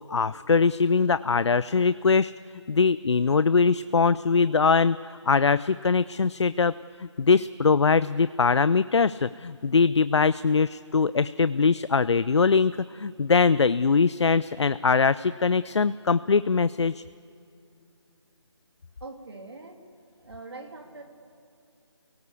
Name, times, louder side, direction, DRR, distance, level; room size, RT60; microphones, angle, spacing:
voice 1, 0.1-2.3 2.7-6.7 7.0-17.0, left 5 dB, 70° left, 16 dB, 0.5 m, -22 dB
voice 2, 19.0-19.9 20.2-21.0, right 3 dB, 60° right, 4 dB, 3.1 m, -42 dB
28.0 x 18.0 x 8.4 m, 2.6 s
figure-of-eight pair, 175°, 15 cm